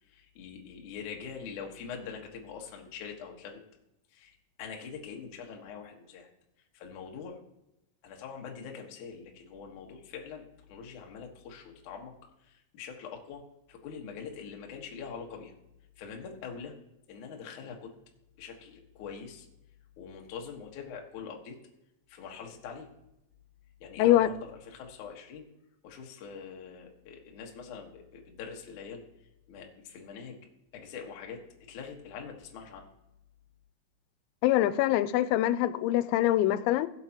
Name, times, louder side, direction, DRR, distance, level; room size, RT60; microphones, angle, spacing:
voice 1, 0.0-3.6 4.1-6.3 6.7-7.4 8.0-12.1 12.4-15.5 16.0-16.8 17.1-17.9 18.4-19.5 20.0-21.6 22.1-22.9 23.8-25.5 25.8-30.4 30.7-31.4 31.7-32.9, left 6 dB, 75° left, 1 dB, 1.8 m, -44 dB
voice 2, 24.0-24.3 34.4-36.9, left 14 dB, 90° left, 15 dB, 3.3 m, -24 dB
16.5 x 7.9 x 2.9 m, 0.86 s
omnidirectional pair, 6.0 m